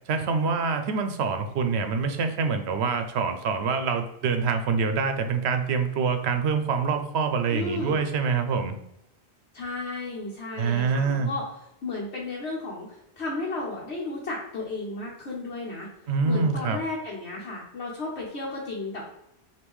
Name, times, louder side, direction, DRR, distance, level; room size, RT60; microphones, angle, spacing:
voice 1, 0.1-8.7 10.6-11.3 16.1-16.8, right 5 dB, 75° right, 7 dB, 0.8 m, -25 dB
voice 2, 7.5-8.0 9.5-11.4 11.8-15.9 16.2-19.0, left 2 dB, 80° left, -5 dB, 1.2 m, -33 dB
5.2 x 2.8 x 3.0 m, 0.84 s
omnidirectional pair, 1.1 m